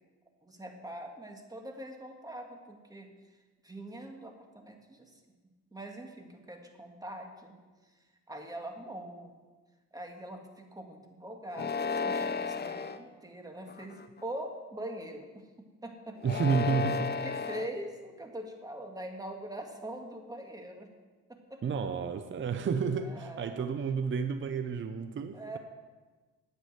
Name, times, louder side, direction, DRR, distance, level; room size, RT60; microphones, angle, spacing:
voice 1, 0.4-3.4 3.6-5.2 5.7-7.6 8.3-9.3 9.9-15.4 15.8-16.4 17.0-20.9 21.3-21.6 23.0-23.7 25.3-25.6, right 1 dB, 10° right, 3 dB, 2.0 m, -43 dB
sound 1, 11.5-13.0 13.7-14.2 16.2-17.7, left 4 dB, 35° left, 0.7 m, -33 dB
voice 2, 16.2-17.2 21.6-25.6, right 5 dB, 40° right, 9 dB, 0.7 m, -31 dB
9.5 x 8.3 x 7.8 m, 1.3 s
cardioid pair, 90°, 30 cm